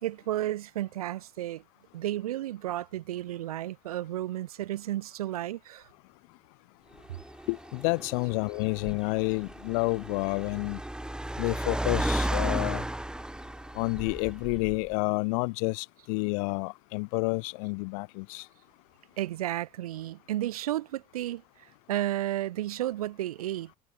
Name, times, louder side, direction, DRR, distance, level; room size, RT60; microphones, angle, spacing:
voice 1, 0.0-1.6 1.9-5.9 19.2-23.7, right 14 dB, 85° right, 0.8 m, -33 dB
Car, 7.0-14.9, right 1 dB, 5° right, 0.9 m, -34 dB
voice 2, 7.5-10.8 11.4-12.8 13.7-18.5, left 33 dB, 75° left, 1.0 m, -29 dB
hypercardioid pair, 65°, 18 cm